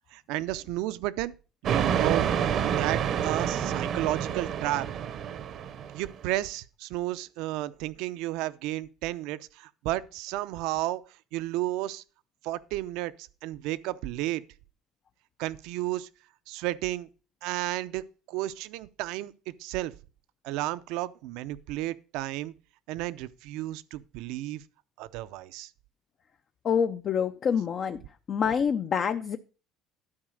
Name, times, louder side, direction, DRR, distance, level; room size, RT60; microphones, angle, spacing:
voice 1, 0.1-1.3 1.6-2.3 2.7-4.9 5.9-11.0 11.3-12.0 12.4-14.4 15.4-16.1 16.5-17.1 17.4-18.0 18.3-19.9 20.4-22.5 22.9-24.6 25.0-25.7, right 16 dB, 75° right, 0.6 m, -32 dB
sound 1, 1.6-6.1, right 8 dB, 40° right, 0.8 m, -28 dB
voice 2, 26.6-28.0 28.3-29.4, left 7 dB, 35° left, 0.5 m, -26 dB
12.5 x 4.8 x 6.3 m
cardioid pair, 165°, 0 cm